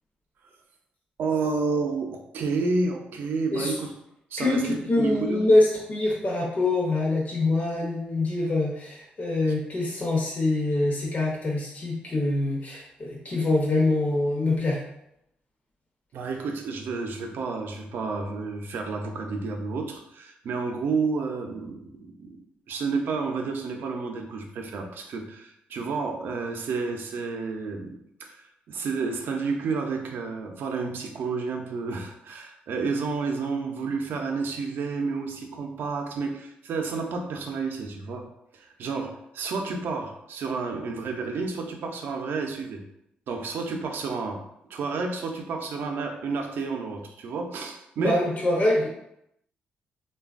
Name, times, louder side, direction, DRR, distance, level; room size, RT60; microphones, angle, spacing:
voice 1, 1.2-3.9 4.3-5.4 16.1-38.2 38.5-42.8 43.3-44.4 44.7-48.2, right 4 dB, 75° right, 3 dB, 0.5 m, -30 dB
voice 2, 4.4-14.8 48.0-48.9, left 2 dB, 45° left, -4 dB, 0.7 m, -24 dB
3.2 x 2.2 x 2.4 m, 0.79 s
cardioid pair, 65°, 4 cm